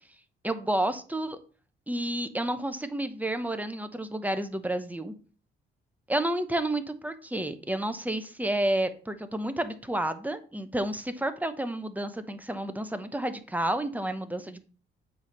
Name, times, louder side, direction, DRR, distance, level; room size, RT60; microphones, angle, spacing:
voice 1, 0.4-1.4 1.9-5.1 6.1-14.7, right 1 dB, 10° right, 9 dB, 0.9 m, -30 dB
7.9 x 3.5 x 5.9 m, 0.39 s
cardioid pair, 90°, 20 cm